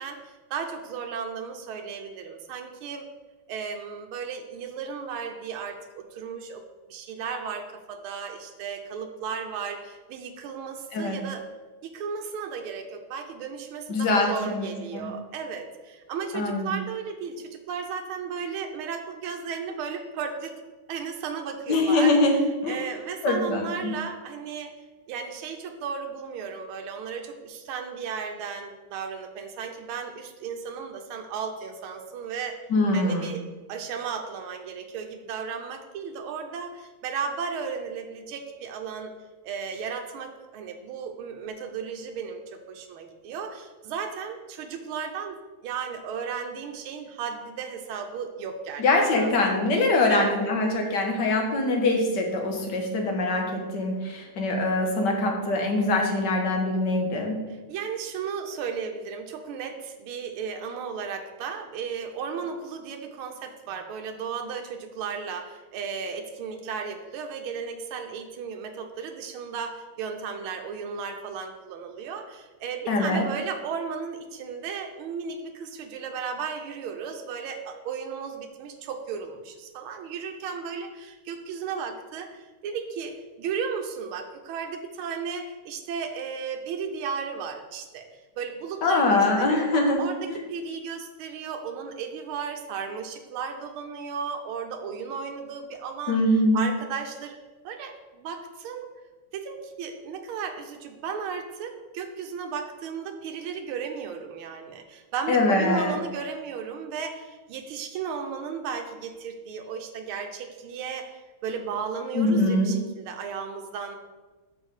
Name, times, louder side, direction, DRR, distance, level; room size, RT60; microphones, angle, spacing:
voice 1, 0.0-3.1 3.5-6.6 6.9-11.4 11.8-20.5 20.9-24.7 25.1-32.6 32.9-39.1 39.4-48.8 49.1-49.3 50.0-50.5 57.5-96.2 96.5-97.4 97.6-98.9 99.3-111.1 111.4-114.0, right 6 dB, 80° right, 4 dB, 1.6 m, -35 dB
voice 2, 13.9-15.1 16.3-16.8 21.7-22.8 23.2-23.7 32.7-33.3 48.8-57.4 72.9-73.3 88.8-90.0 90.3-90.4 96.1-96.7 105.3-105.9 112.1-112.7, left 2 dB, 55° left, 2 dB, 1.8 m, -23 dB
6.3 x 5.3 x 6.4 m, 1.2 s
omnidirectional pair, 2.3 m